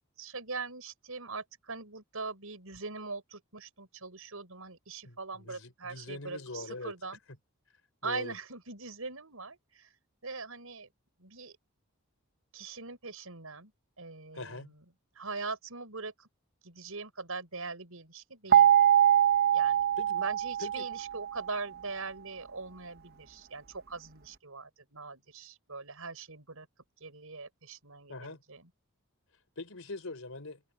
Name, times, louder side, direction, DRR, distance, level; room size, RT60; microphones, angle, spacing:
voice 1, 0.2-7.2 8.0-9.9 10.2-10.9 11.2-11.6 12.5-13.7 14.0-14.8 15.2-16.3 16.6-18.7 19.5-19.8 20.2-26.7 27.0-28.7, right 4 dB, 75° right, 5.2 m, -41 dB
voice 2, 5.0-6.9 8.0-8.3 14.3-14.7 20.0-20.3 20.6-20.9 28.1-28.4 29.6-30.6, left 2 dB, 70° left, 3.9 m, -42 dB
sound 1, 18.5-21.5, right 10 dB, 45° right, 1.0 m, -23 dB
head